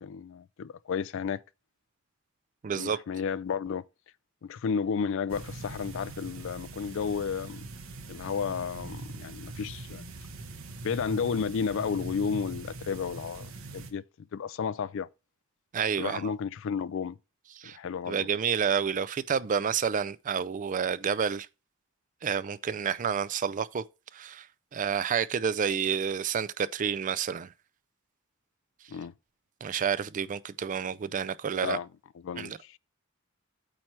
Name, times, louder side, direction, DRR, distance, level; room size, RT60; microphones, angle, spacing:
voice 1, 0.0-1.4 2.8-3.9 4.4-7.6 8.1-10.1 10.8-15.1 16.0-17.2 17.7-18.3 28.9-29.1 31.6-31.9 32.2-32.8, left 6 dB, 65° left, 0.4 m, -32 dB
voice 2, 2.6-3.0 15.7-16.3 17.6-17.8 18.1-21.5 22.2-23.8 24.1-24.5 24.7-27.5 29.6-31.8 32.4-32.6, right 7 dB, 35° right, 0.4 m, -29 dB
sound 1, 5.3-13.9, right 3 dB, 70° right, 1.1 m, -42 dB
8.8 x 3.2 x 5.9 m
head